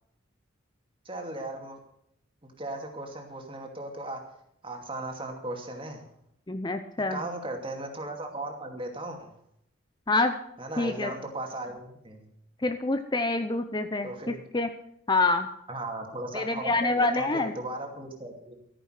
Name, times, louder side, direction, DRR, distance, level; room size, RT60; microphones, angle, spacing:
voice 1, 1.0-1.8 2.4-4.2 4.6-6.0 7.1-9.3 10.6-12.3 14.0-14.4 15.7-18.6, right 2 dB, 25° right, 3 dB, 2.6 m, -37 dB
voice 2, 6.5-7.2 10.1-10.4 10.8-11.1 12.6-14.7 15.1-15.5 16.3-17.5, left 2 dB, 20° left, 8 dB, 0.7 m, -26 dB
14.0 x 10.0 x 6.5 m, 0.74 s
head